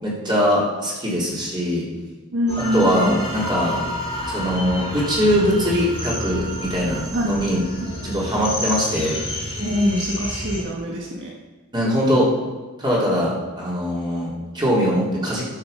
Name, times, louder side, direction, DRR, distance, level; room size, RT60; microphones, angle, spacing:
voice 1, 0.0-1.9 2.7-3.8 4.3-7.6 8.0-9.2 11.7-12.3 12.8-15.4, equal, 20° right, -6 dB, 3.5 m, -21 dB
voice 2, 2.3-3.2 7.1-7.4 7.8-8.2 9.6-11.3, equal, 55° right, -2 dB, 1.6 m, -24 dB
sound 1, 2.5-10.6, equal, 25° left, 2.8 m, -29 dB
11.5 x 6.5 x 6.7 m, 1.2 s
head